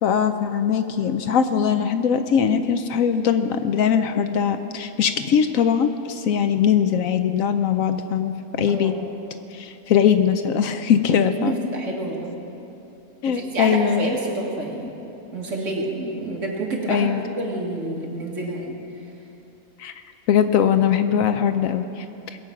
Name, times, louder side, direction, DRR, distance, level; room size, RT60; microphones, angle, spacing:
voice 1, 0.0-8.9 9.5-11.5 13.2-14.1 16.9-17.3 19.8-19.9 20.3-22.0, left 8 dB, 70° left, 9 dB, 1.0 m, -21 dB
voice 2, 8.7-9.1 11.4-12.3 13.3-14.9 15.3-17.1 17.4-18.8, right 2 dB, 55° right, -2 dB, 2.2 m, -28 dB
21.0 x 7.7 x 5.8 m, 2.8 s
omnidirectional pair, 1.6 m